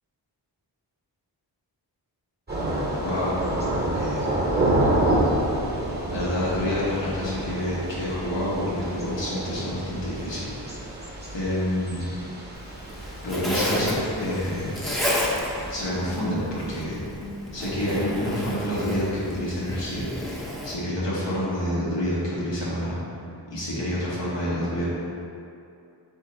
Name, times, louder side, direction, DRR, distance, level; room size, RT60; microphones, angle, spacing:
Thunder / Rain, 2.5-15.9, right 1 dB, 25° right, 1.0 m, -28 dB
voice 1, 3.0-3.4 4.0-4.2 6.1-10.5 11.3-12.1 13.2-14.8 15.7-17.0 17.5-20.1 20.6-23.0 23.5-24.8, left 1 dB, 85° left, -7 dB, 1.2 m, -28 dB
Zipper (clothing), 12.5-20.7, left 1 dB, ahead, 0.7 m, -31 dB
3.8 x 2.8 x 4.3 m, 2.6 s
cardioid pair, 45°, 43 cm